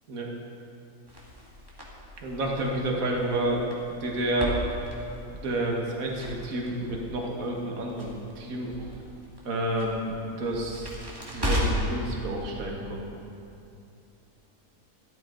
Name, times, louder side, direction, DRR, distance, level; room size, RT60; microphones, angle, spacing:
Crackle, 1.1-12.0, equal, 15° right, 2.0 m, -36 dB
voice 1, 2.2-3.7 4.0-4.6 5.3-8.9 9.5-10.9 11.3-13.2, right 1 dB, 55° right, -1 dB, 1.9 m, -30 dB
13.5 x 13.0 x 3.9 m, 2.7 s
omnidirectional pair, 1.8 m